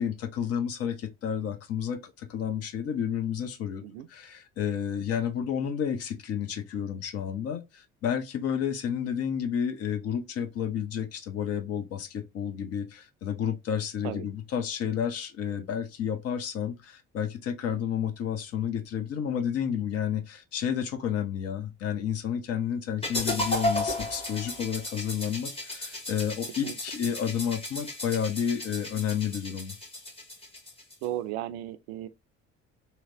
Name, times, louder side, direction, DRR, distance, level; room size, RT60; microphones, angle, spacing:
voice 1, 0.0-3.8 4.1-29.7, left 8 dB, 40° left, 0.7 m, -31 dB
sound 1, 23.0-31.1, left 1 dB, 15° left, 1.2 m, -34 dB
voice 2, 31.0-32.1, right 13 dB, 60° right, 0.5 m, -35 dB
2.9 x 2.7 x 2.7 m
figure-of-eight pair, 50°, 38 cm